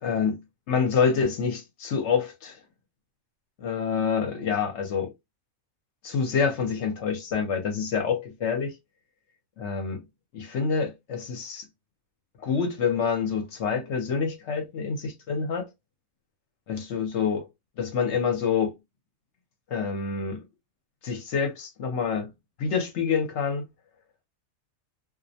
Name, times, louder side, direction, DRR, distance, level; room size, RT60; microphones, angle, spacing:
voice 1, 0.0-2.6 3.6-5.1 6.0-8.7 9.6-10.0 10.3-11.7 12.4-15.7 16.7-17.5 17.8-18.7 19.7-20.4 21.0-22.3 22.6-23.6, left 6 dB, 60° left, 0.8 m, -27 dB
2.4 x 2.0 x 2.6 m
omnidirectional pair, 1.5 m